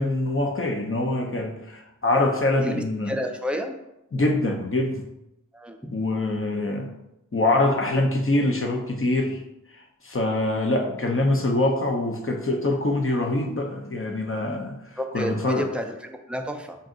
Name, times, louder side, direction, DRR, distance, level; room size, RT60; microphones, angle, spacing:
voice 1, 0.0-3.2 4.1-5.1 5.9-6.9 7.3-9.4 10.0-15.7, left 2 dB, 40° left, 2 dB, 0.7 m, -24 dB
voice 2, 2.6-3.7 5.5-5.9 15.0-16.8, equal, 5° right, 3 dB, 0.5 m, -31 dB
5.4 x 2.6 x 3.8 m, 0.88 s
wide cardioid pair, 40°, 32 cm